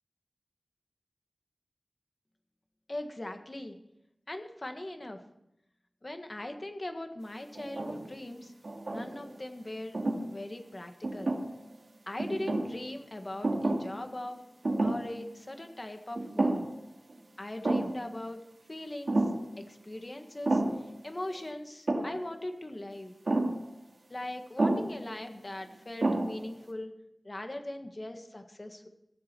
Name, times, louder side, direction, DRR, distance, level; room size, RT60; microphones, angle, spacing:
voice 1, 2.9-3.8 4.3-5.2 6.0-8.5 8.9-10.0 10.3-11.4 12.1-14.4 14.8-16.7 17.4-18.4 18.7-19.2 19.6-20.6 21.0-23.1 24.1-26.9 27.2-28.9, left 1 dB, 40° left, 5 dB, 1.7 m, -40 dB
sound 1, 7.5-8.1 8.6-9.4 9.9-10.2 11.0-11.7 12.2-12.8 13.4-14.0 14.2-14.3 14.6-15.2 15.5-15.6 16.2-16.8 17.1-17.2 17.6-18.0 19.1-19.5 20.5-20.9 21.9-22.2 23.3-23.6 24.6-25.0 25.6-25.7 26.0-26.5, right 2 dB, 75° right, 2.3 m, -30 dB
16.0 x 7.5 x 6.1 m, 0.82 s
wide cardioid pair, 60°, 0 cm